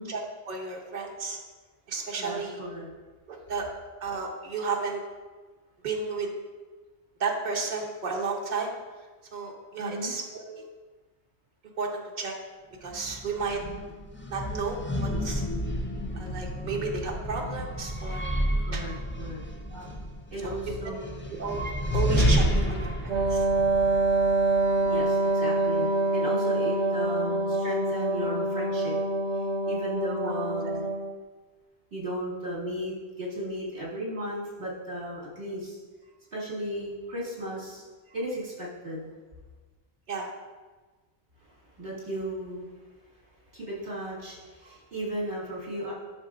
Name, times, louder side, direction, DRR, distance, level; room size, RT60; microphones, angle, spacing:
voice 1, 0.1-1.4 1.9-2.6 3.3-3.7 4.0-5.0 5.8-6.3 7.2-8.7 9.3-10.6 11.8-12.3 12.8-13.6 14.3-15.4 16.2-18.3 18.7-18.8 19.7-19.9 20.4-20.5 20.8-21.0 21.4-21.6 21.9-23.5 30.2-30.3 40.1-40.3 44.6-44.7, right 4 dB, 45° right, -1 dB, 1.0 m, -33 dB
voice 2, 2.2-2.9 9.8-10.1 18.6-19.4 20.3-21.2 24.6-29.0 29.3-30.9 31.9-35.8 36.3-37.8 38.1-39.1 41.4-42.7 43.5-45.9, equal, 60° right, -8 dB, 2.7 m, -35 dB
sound 1, 12.8-25.0, equal, 20° left, 0.4 m, -30 dB
Wind instrument woodwind instrument, 23.1-31.2, right 2 dB, 80° right, 0.9 m, -26 dB
11.0 x 5.9 x 2.5 m, 1.3 s
omnidirectional pair, 1.1 m